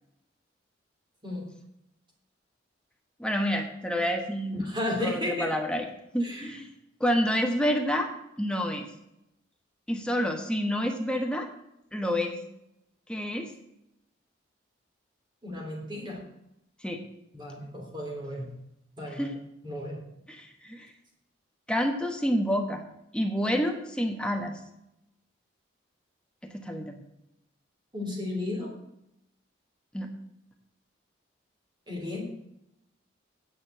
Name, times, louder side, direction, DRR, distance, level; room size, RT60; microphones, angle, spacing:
voice 1, 3.2-4.6 5.0-5.9 6.1-6.7 7.0-8.1 8.4-8.9 9.9-11.5 11.9-12.4 13.1-13.5 16.8-17.0 19.1-19.3 20.3-20.9 21.7-22.8 23.1-24.5 26.4-27.0 29.9-30.1, equal, 5° left, 3 dB, 1.1 m, -28 dB
voice 2, 4.5-5.5 6.2-6.6 15.4-16.2 17.3-18.5 19.0-19.3 19.6-20.0 27.9-28.7 31.9-32.2, left 1 dB, 25° right, -1 dB, 3.3 m, -33 dB
9.6 x 6.6 x 7.6 m, 0.82 s
head